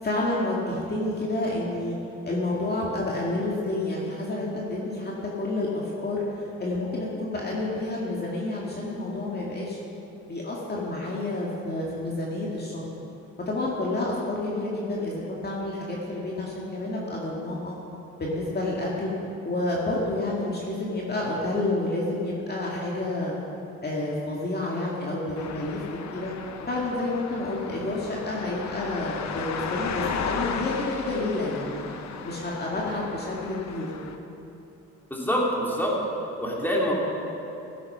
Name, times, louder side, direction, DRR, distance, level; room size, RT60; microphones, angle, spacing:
voice 1, 0.0-2.0 2.2-9.8 10.3-12.9 13.5-17.8 18.2-19.1 19.4-23.4 23.8-25.8 26.1-26.3 26.7-31.8 32.2-33.9, left 2 dB, 35° left, -4 dB, 2.2 m, -29 dB
sound 1, 25.4-34.2, left 6 dB, 65° left, 1.0 m, -35 dB
voice 2, 35.1-35.9 36.4-36.9, equal, 5° left, -3 dB, 2.9 m, -25 dB
16.0 x 8.5 x 5.7 m, 3.0 s
cardioid pair, 90°, 30 cm